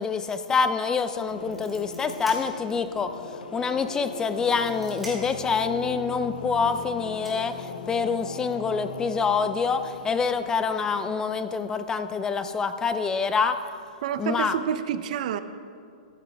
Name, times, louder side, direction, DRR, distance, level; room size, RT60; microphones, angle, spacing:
voice 1, 0.0-13.6 14.2-14.6, left 5 dB, 15° left, 10 dB, 0.3 m, -26 dB
sound 1, 0.9-1.0 1.2-3.0 3.4-3.5 4.2-5.5 6.6-6.7 7.2-8.3, equal, ahead, 2.2 m, -44 dB
sound 2, 1.3-11.2, left 3 dB, 80° left, 0.8 m, -40 dB
voice 2, 14.0-15.4, right 9 dB, 55° right, 12 dB, 0.5 m, -28 dB
13.5 x 8.3 x 3.4 m, 2.3 s
hypercardioid pair, 145°, 5 cm